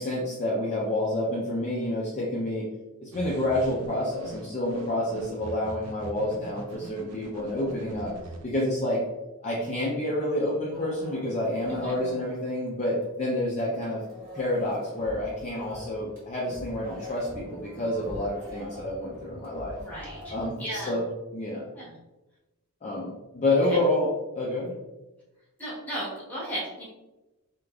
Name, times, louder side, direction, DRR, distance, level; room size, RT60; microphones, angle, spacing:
voice 1, 0.0-2.7 3.0-8.1 8.4-9.0 9.4-14.0 14.3-19.8 20.3-21.0 21.3-21.7 22.8-24.1 24.3-24.8, left 1 dB, 30° left, -5 dB, 0.5 m, -28 dB
sound 1, 3.1-8.4, right 1 dB, 90° right, 0.5 m, -43 dB
sound 2, 10.7-13.3 13.6-20.5, right 1 dB, 40° right, 0.8 m, -44 dB
voice 2, 19.4-21.0 21.7-22.0 23.7-23.8 25.6-26.9, equal, 10° left, -7 dB, 1.1 m, -36 dB
3.3 x 2.5 x 2.3 m, 1.0 s
head